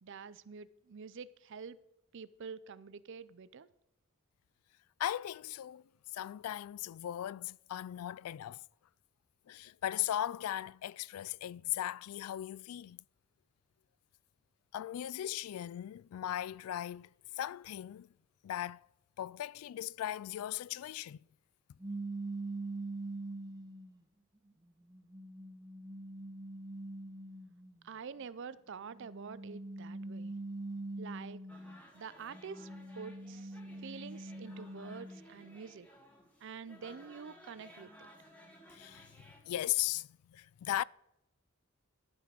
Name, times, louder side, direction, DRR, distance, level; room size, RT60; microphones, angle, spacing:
voice 1, 0.0-1.8 2.1-3.7 27.8-30.3 31.0-31.4 31.9-32.7 33.0-35.9 36.4-37.9, right 6 dB, 55° right, 0.5 m, -47 dB
voice 2, 5.0-5.8 6.1-8.6 9.5-13.0 14.7-17.1 17.4-18.1 18.4-18.8 19.2-21.2 38.7-39.1 39.5-40.8, left 12 dB, 85° left, 0.3 m, -38 dB
sound 1, 21.8-24.0 24.6-27.7 28.9-31.9 32.3-35.3, right 2 dB, 20° right, 1.0 m, -43 dB
sound 2, 31.5-39.4, equal, 5° left, 1.8 m, -58 dB
12.5 x 5.9 x 6.5 m
head